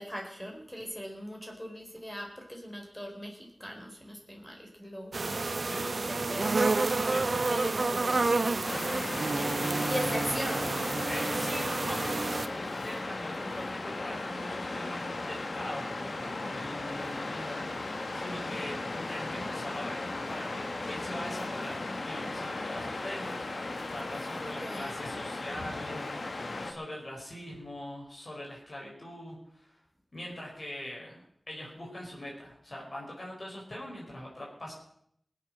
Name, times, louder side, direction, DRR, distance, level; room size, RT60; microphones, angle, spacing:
voice 1, 0.0-7.1 7.5-8.4 9.8-10.7 24.4-25.0, equal, 10° left, 0 dB, 4.0 m, -40 dB
sound 1, 5.1-12.5, right 3 dB, 65° right, 0.8 m, -29 dB
voice 2, 5.6-5.9 7.0-8.1 11.0-18.8 19.1-29.8 30.1-34.7, left 1 dB, 50° left, -3 dB, 5.6 m, -42 dB
Waves surf, 8.6-26.7, left 2 dB, 75° left, 1.6 m, -36 dB
19.5 x 8.8 x 6.4 m, 0.70 s
wide cardioid pair, 55°, 0 cm